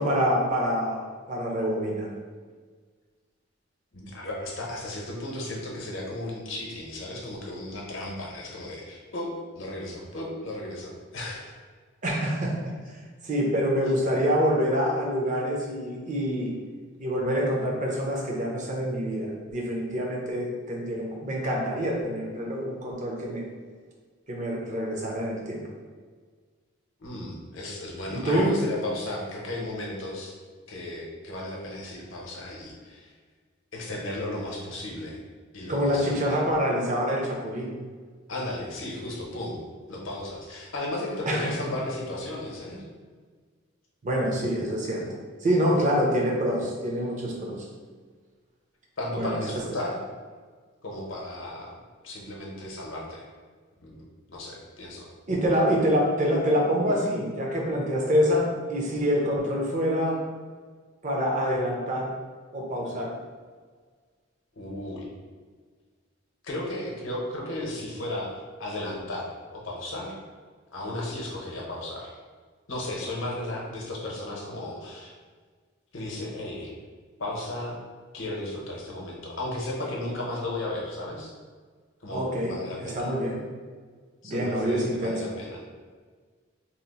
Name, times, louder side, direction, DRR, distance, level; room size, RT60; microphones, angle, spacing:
voice 1, 0.0-2.1 12.0-12.7 13.2-16.5 17.0-23.5 24.3-25.6 28.1-28.5 35.7-37.7 41.3-41.5 44.0-45.1 45.4-47.7 49.1-49.4 55.3-60.2 61.0-62.1 62.5-63.1 82.1-83.4 84.2-85.3, equal, 35° right, -1 dB, 0.5 m, -26 dB
voice 2, 3.9-11.5 27.0-30.3 30.7-33.1 33.7-35.2 35.5-36.4 38.3-39.6 39.9-42.8 49.0-50.0 50.8-51.7 52.0-53.2 53.8-54.0 54.3-55.1 64.6-65.1 66.4-68.3 68.6-69.3 69.5-70.2 70.7-72.1 72.7-75.1 75.9-76.7 77.2-77.8 78.1-81.3 82.0-83.1 84.2-85.6, left 1 dB, 65° left, -2 dB, 0.7 m, -34 dB
2.8 x 2.0 x 4.0 m, 1.6 s
head